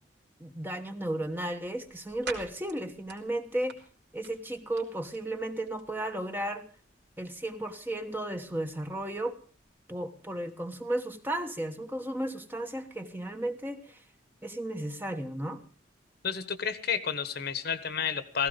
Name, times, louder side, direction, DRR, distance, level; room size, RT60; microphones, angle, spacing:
voice 1, 0.4-3.8 4.1-6.7 7.2-9.4 9.9-14.0 14.4-15.6, right 1 dB, 10° right, 6 dB, 1.3 m, -34 dB
sound 1, 1.0-9.7, right 5 dB, 65° right, 3.3 m, -50 dB
voice 2, 16.2-18.5, left 7 dB, 55° left, 12 dB, 1.4 m, -31 dB
16.5 x 16.0 x 5.3 m, 0.40 s
head